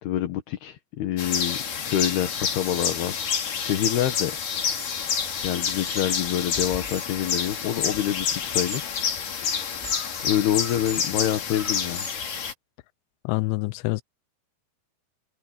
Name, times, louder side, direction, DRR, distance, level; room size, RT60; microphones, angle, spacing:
voice 1, 0.0-1.6 1.9-3.2 3.6-4.3 5.4-8.9 9.6-12.1, left 11 dB, 65° left, 3.2 m, -27 dB
sound 1, 1.2-12.5, left 7 dB, 50° left, 4.1 m, -28 dB
sound 2, 4.8-12.2, left 1 dB, 10° left, 3.9 m, -42 dB
voice 2, 13.2-14.0, left 21 dB, 85° left, 3.0 m, -26 dB
omnidirectional pair, 5.2 m